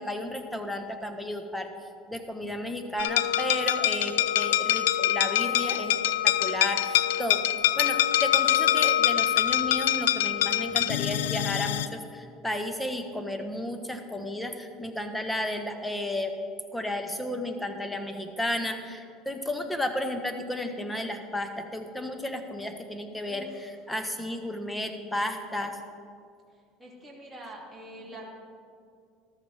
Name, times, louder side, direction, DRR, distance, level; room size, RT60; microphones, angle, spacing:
voice 1, 0.0-1.7 2.1-6.0 6.2-7.4 7.8-16.3 16.7-25.8, left 1 dB, 5° left, 5 dB, 1.4 m, -33 dB
sound 1, 3.0-11.9, left 12 dB, 85° left, 0.4 m, -25 dB
voice 2, 7.1-7.6 23.3-23.5 26.8-28.3, right 1 dB, 10° right, -5 dB, 3.0 m, -45 dB
14.0 x 13.0 x 3.6 m, 2.3 s
supercardioid pair, 90°, 0 cm